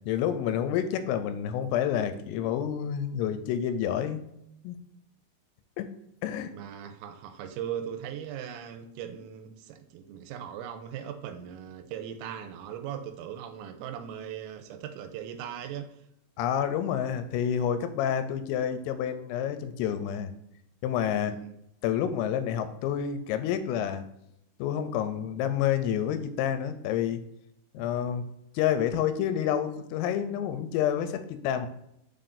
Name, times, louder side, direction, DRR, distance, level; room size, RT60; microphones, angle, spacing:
voice 1, 0.1-4.2 4.6-4.8 5.8-5.9 6.2-6.5 16.4-20.3 20.8-21.4 21.8-24.0 24.6-27.2 27.7-28.2 28.6-31.7, left 9 dB, 85° left, 3.1 m, -29 dB
voice 2, 6.5-15.9 21.1-21.5 27.8-27.9, right 9 dB, 85° right, 3.3 m, -39 dB
6.8 x 5.8 x 2.6 m
omnidirectional pair, 5.9 m